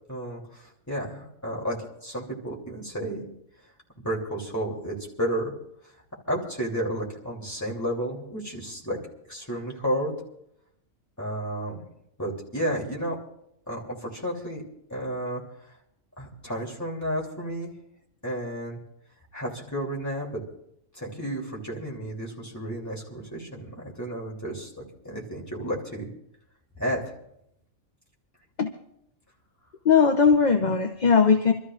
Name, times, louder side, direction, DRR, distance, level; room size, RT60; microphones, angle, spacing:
voice 1, 0.1-3.2 4.0-5.5 6.3-9.0 9.3-10.1 11.2-11.8 12.2-13.2 13.7-14.6 14.9-15.4 16.2-17.7 18.2-18.8 19.3-20.4 20.9-24.7 25.0-26.1 26.8-27.1, equal, 10° left, -3 dB, 2.8 m, -32 dB
voice 2, 29.8-31.5, left 5 dB, 40° left, 4 dB, 0.7 m, -19 dB
28.0 x 13.0 x 2.4 m, 0.77 s
omnidirectional pair, 1.4 m